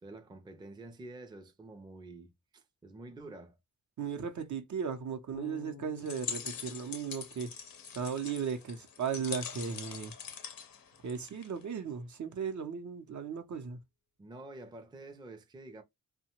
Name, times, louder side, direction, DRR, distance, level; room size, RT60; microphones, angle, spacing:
voice 1, 0.0-3.6 14.2-15.8, right 2 dB, 15° right, 0.4 m, -48 dB
voice 2, 4.0-7.5 7.9-10.1 11.0-13.8, right 6 dB, 60° right, 0.7 m, -36 dB
Bass guitar, 5.3-8.4, left 8 dB, 50° left, 0.5 m, -53 dB
sound 1, 6.0-11.6, left 6 dB, 85° left, 0.7 m, -43 dB
2.8 x 2.2 x 2.9 m
wide cardioid pair, 125°, 33 cm